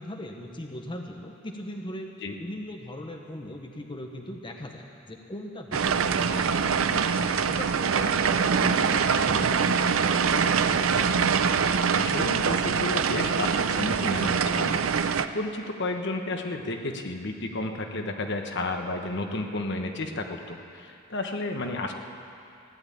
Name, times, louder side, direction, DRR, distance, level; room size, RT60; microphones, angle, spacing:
voice 1, 0.0-2.1 2.4-6.7 7.4-11.1, left 1 dB, 25° left, 3 dB, 0.9 m, -39 dB
sound 1, 5.7-15.3, right 6 dB, 90° right, 0.6 m, -24 dB
voice 2, 11.9-15.1 15.3-21.9, left 2 dB, 60° left, 4 dB, 1.2 m, -32 dB
15.5 x 10.5 x 8.6 m, 2.6 s
head